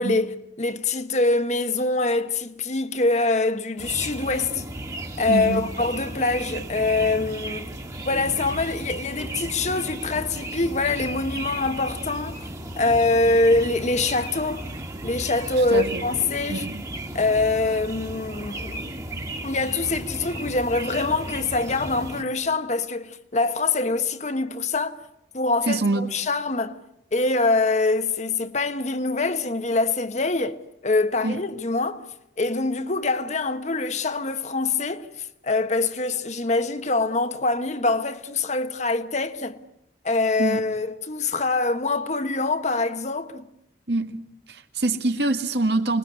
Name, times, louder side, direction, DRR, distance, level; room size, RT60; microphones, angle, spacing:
voice 1, 0.0-4.6 5.2-7.7 8.0-12.4 12.8-14.7 15.0-16.6 17.1-18.9 19.4-25.0 25.3-26.8 27.1-30.6 30.8-32.1 32.4-35.1 35.4-39.6 40.0-43.5, left 3 dB, 40° left, 1.3 m, -24 dB
sound 1, 3.8-22.2, right 1 dB, 20° right, 2.0 m, -35 dB
voice 2, 5.3-5.7 15.7-16.0 16.5-16.8 25.7-26.1 31.2-31.4 40.4-40.6 43.9-44.1 44.5-46.0, right 2 dB, 65° right, 1.9 m, -25 dB
26.0 x 21.0 x 9.7 m
head